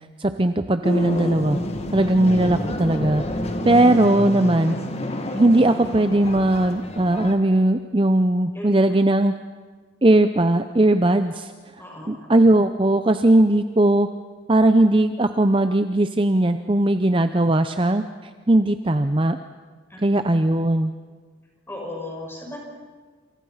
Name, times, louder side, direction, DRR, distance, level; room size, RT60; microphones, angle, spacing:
voice 1, 0.2-1.6 1.9-3.2 3.6-4.8 5.3-9.3 10.0-11.5 12.1-14.1 14.5-18.0 18.5-19.4 20.0-20.9, right 1 dB, 25° right, 9 dB, 0.7 m, -18 dB
sound 1, 0.8-7.4, left 1 dB, 30° left, 2.2 m, -29 dB
voice 2, 11.8-12.3 19.9-20.0 21.7-22.6, left 1 dB, 10° left, -1 dB, 6.6 m, -35 dB
28.5 x 28.0 x 5.7 m, 1.5 s
head